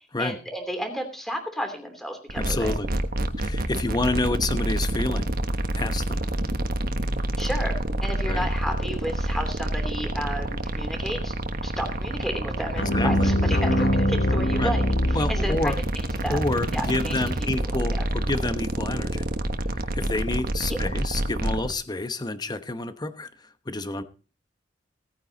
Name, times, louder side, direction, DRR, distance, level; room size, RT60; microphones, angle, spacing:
voice 1, 0.2-2.7 7.4-11.3 11.6-16.4 16.7-17.3 20.7-20.8, equal, ahead, 5 dB, 3.0 m, -32 dB
voice 2, 2.3-2.9 3.4-5.3 5.7-6.2 8.3-8.5 12.8-13.3 14.6-14.7 15.1-15.8 16.3-19.3 19.8-24.0, left 2 dB, 25° left, 11 dB, 1.0 m, -29 dB
sound 1, 2.3-21.7, right 1 dB, 55° right, 1.3 m, -28 dB
sound 2, 12.8-15.9, equal, 65° left, 1.5 m, -23 dB
17.0 x 9.5 x 4.0 m, 0.36 s
head